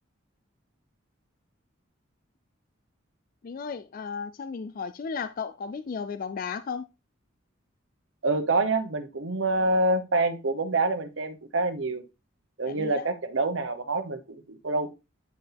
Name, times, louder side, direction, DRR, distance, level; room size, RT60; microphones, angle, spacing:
voice 1, 3.4-6.9 12.7-13.1, left 5 dB, 45° left, 0.3 m, -34 dB
voice 2, 8.2-12.0 12.6-14.9, right 2 dB, 70° right, 1.0 m, -26 dB
9.3 x 4.6 x 3.4 m
head